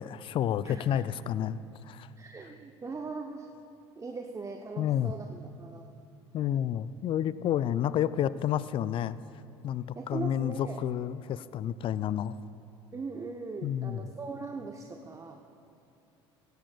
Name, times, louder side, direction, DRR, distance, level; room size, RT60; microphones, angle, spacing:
voice 1, 0.0-1.6 1.8-2.1 4.8-5.1 6.3-9.2 9.6-12.4 13.6-14.1, left 10 dB, 35° left, 17 dB, 0.3 m, -30 dB
voice 2, 0.6-1.0 2.2-3.5 4.0-5.9 9.9-10.8 12.9-15.4, right 4 dB, 20° right, 3 dB, 0.7 m, -40 dB
17.0 x 16.0 x 2.3 m, 2.6 s
figure-of-eight pair, 60°, 15 cm